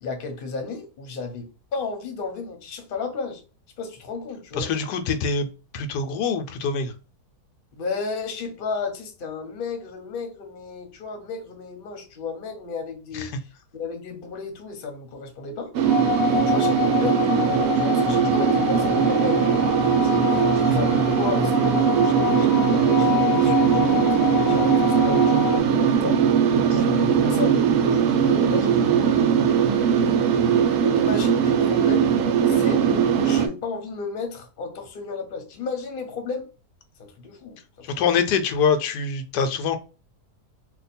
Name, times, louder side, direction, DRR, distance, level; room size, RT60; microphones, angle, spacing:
voice 1, 0.0-3.4 3.8-4.7 7.8-13.3 13.7-15.7 16.2-26.2 26.7-29.4 29.9-32.1 32.5-32.9 33.2-36.5 37.0-37.9, left 4 dB, 40° left, 0.9 m, -33 dB
voice 2, 4.6-5.5 5.7-6.9 13.1-13.3 20.6-20.8 26.7-26.8 37.8-39.8, left 6 dB, 85° left, 1.2 m, -24 dB
sound 1, 15.7-33.5, right 7 dB, 75° right, 1.1 m, -20 dB
sound 2, 15.8-25.6, left 8 dB, 65° left, 0.6 m, -27 dB
2.7 x 2.3 x 4.2 m
omnidirectional pair, 1.7 m